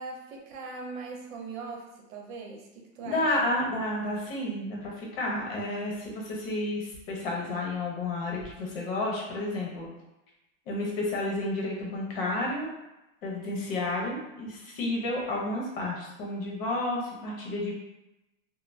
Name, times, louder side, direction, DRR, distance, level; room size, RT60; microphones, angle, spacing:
voice 1, 0.0-3.3, right 4 dB, 80° right, 0 dB, 0.8 m, -40 dB
voice 2, 3.0-9.9 10.7-12.7 13.2-17.7, left 2 dB, 45° left, -2 dB, 0.8 m, -31 dB
2.5 x 2.0 x 3.2 m, 0.96 s
supercardioid pair, 175°, 39 cm